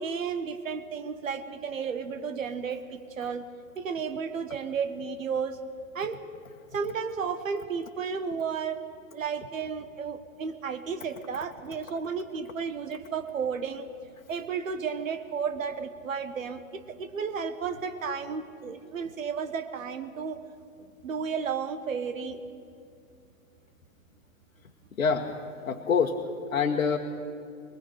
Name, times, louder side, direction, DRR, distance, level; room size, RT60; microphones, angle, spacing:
voice 1, 0.0-3.4 3.7-5.6 5.9-6.2 6.7-8.8 9.1-13.9 14.3-20.4 21.0-22.4, right 6 dB, 70° right, 10 dB, 1.6 m, -33 dB
voice 2, 25.0-25.3 25.7-27.0, left 5 dB, 75° left, 0 dB, 1.4 m, -26 dB
21.5 x 20.0 x 6.5 m, 2.4 s
figure-of-eight pair, 110°, 41 cm